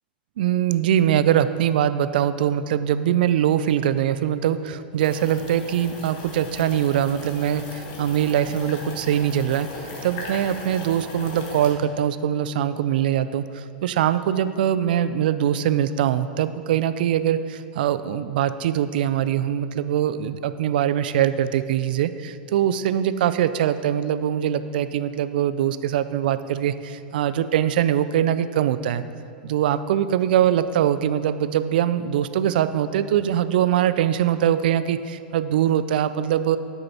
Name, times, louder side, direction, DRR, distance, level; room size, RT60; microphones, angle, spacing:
voice 1, 0.4-9.7 10.0-29.0 29.4-36.6, right 10 dB, 65° right, 13 dB, 0.4 m, -22 dB
sound 1, 5.0-11.7, left 2 dB, 50° left, 1.8 m, -38 dB
8.9 x 6.7 x 4.4 m, 2.5 s
hypercardioid pair, 105°, 5 cm